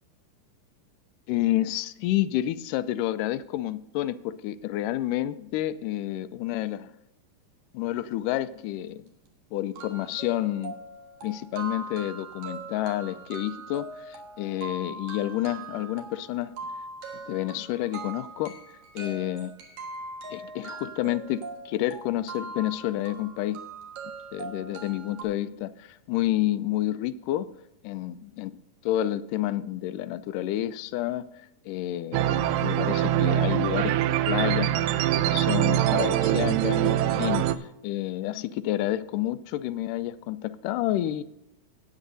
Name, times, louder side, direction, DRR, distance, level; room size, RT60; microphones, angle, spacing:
voice 1, 1.3-6.9 7.7-9.1 9.5-10.8 11.2-16.5 17.3-18.6 19.0-19.5 20.3-23.6 24.3-27.5 27.8-28.6 28.8-31.2 31.7-34.0 34.3-34.8 35.3-37.5 37.8-41.2, left 14 dB, 80° left, 14 dB, 2.0 m, -29 dB
sound 1, 8.8-8.9 9.3-9.4 9.8-25.2, right 3 dB, 65° right, 2.8 m, -41 dB
sound 2, 32.1-37.5, right 12 dB, 90° right, 2.3 m, -24 dB
17.5 x 9.0 x 2.6 m, 0.85 s
omnidirectional pair, 3.9 m